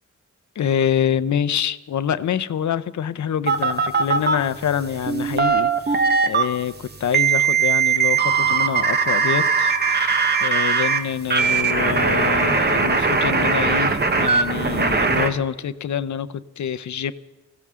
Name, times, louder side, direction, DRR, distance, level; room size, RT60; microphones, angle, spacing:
voice 1, 0.6-10.1 10.4-17.1, left 9 dB, 75° left, 15 dB, 0.6 m, -26 dB
sound 1, 3.5-4.4 5.1-6.4 7.1-11.0 11.3-15.3, right 5 dB, 35° right, 1.1 m, -19 dB
21.0 x 16.0 x 3.7 m, 1.1 s
wide cardioid pair, 145°, 29 cm